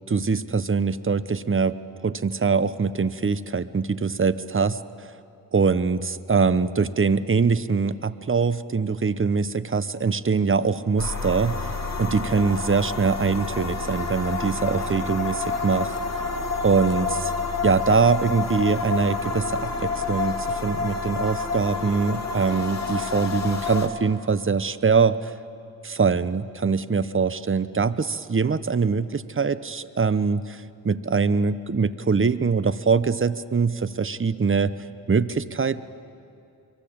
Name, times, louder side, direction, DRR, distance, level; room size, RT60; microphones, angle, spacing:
voice 1, 0.1-1.8 2.0-4.8 5.5-11.6 12.0-15.9 16.6-17.3 17.6-25.3 25.8-34.7 35.1-35.9, right 5 dB, 35° right, 15 dB, 0.9 m, -23 dB
sound 1, 11.0-23.9, left 4 dB, 45° left, 2.8 m, -29 dB
24.0 x 23.5 x 8.7 m, 2.6 s
cardioid pair, 60°, 37 cm